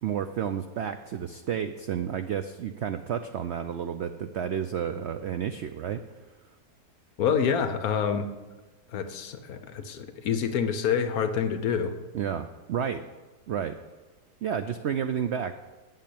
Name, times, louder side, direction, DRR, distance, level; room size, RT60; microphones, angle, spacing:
voice 1, 0.0-6.0 12.1-13.1 13.5-13.8 14.4-15.5, right 8 dB, 85° right, 9 dB, 0.6 m, -31 dB
voice 2, 7.2-8.3 8.9-11.9, left 7 dB, 65° left, 10 dB, 1.2 m, -27 dB
9.0 x 7.6 x 8.4 m, 1.2 s
omnidirectional pair, 1.8 m